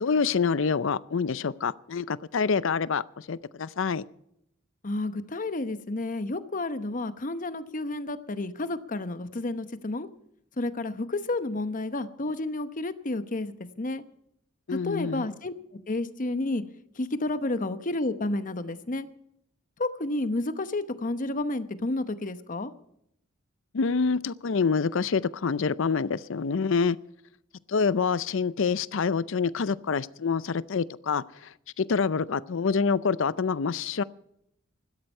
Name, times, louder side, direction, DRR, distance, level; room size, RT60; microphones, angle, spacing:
voice 1, 0.0-4.0 14.7-15.3 23.7-27.0 27.7-31.2 31.8-34.0, left 5 dB, 65° left, 18 dB, 0.5 m, -26 dB
voice 2, 4.8-10.1 10.6-14.0 14.8-15.5 15.9-16.6 17.0-19.1 19.8-22.7, left 2 dB, 40° left, 11 dB, 0.9 m, -31 dB
16.0 x 12.5 x 5.4 m, 0.76 s
head